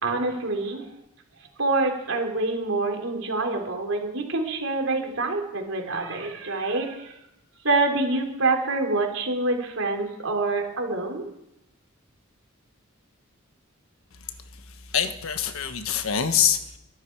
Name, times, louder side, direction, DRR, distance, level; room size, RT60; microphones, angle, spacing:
voice 1, 0.0-0.8 1.6-7.1 7.6-11.2, right 3 dB, 70° right, 2 dB, 3.4 m, -26 dB
voice 2, 14.7-16.8, left 8 dB, 80° left, 8 dB, 1.4 m, -25 dB
24.0 x 12.0 x 4.7 m, 0.86 s
head